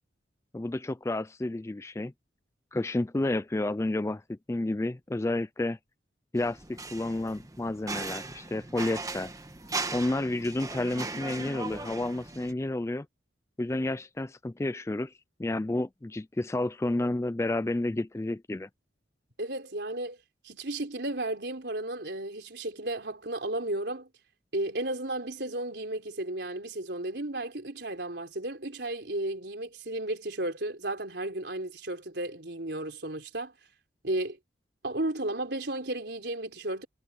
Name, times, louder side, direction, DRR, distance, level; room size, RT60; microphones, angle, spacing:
voice 1, 0.5-2.1 2.7-5.8 6.3-9.3 9.9-13.1 13.6-15.1 15.4-18.7, left 2 dB, 15° left, 0.3 m, -30 dB
sound 1, 6.4-12.5, right 3 dB, 20° right, 1.2 m, -38 dB
voice 2, 19.4-20.2 20.4-24.1 24.5-33.5 34.0-34.4 34.8-36.9, right 1 dB, 65° right, 4.0 m, -34 dB
head